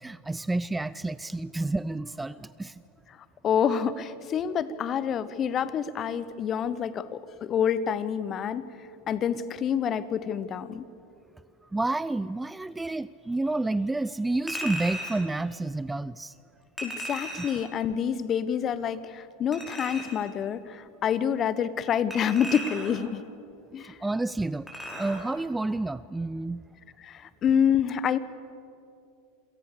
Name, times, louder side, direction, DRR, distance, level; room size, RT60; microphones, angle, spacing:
voice 1, 0.0-2.7 11.7-16.3 17.4-17.5 23.8-24.7 25.0-26.6, right 2 dB, 10° right, 18 dB, 0.4 m, -30 dB
voice 2, 3.4-8.7 9.1-10.8 16.8-23.2 23.7-23.9 27.0-28.2, left 8 dB, 35° left, 16 dB, 1.1 m, -27 dB
Chink clink, 14.5-15.3 16.8-17.7 19.5-20.3 22.1-23.1 24.7-25.3 25.7-25.8, equal, 5° left, 6.0 m, -36 dB
27.5 x 18.0 x 6.8 m, 2.7 s
hypercardioid pair, 90°, 0 cm